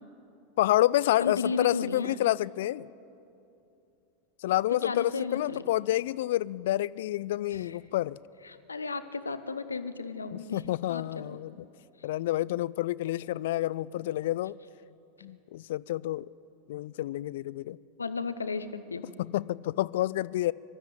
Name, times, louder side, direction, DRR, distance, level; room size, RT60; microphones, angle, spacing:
voice 1, 0.6-2.9 4.4-8.2 10.3-11.5 12.0-14.6 15.2-16.3 16.7-17.8 19.2-20.5, left 15 dB, 60° left, 21 dB, 0.3 m, -28 dB
voice 2, 1.2-2.2 4.7-5.6 7.5-7.8 8.4-10.6 10.9-11.4 18.0-19.1, left 4 dB, 80° left, 11 dB, 0.9 m, -34 dB
23.0 x 12.5 x 8.9 m, 2.8 s
figure-of-eight pair, 85°, 0 cm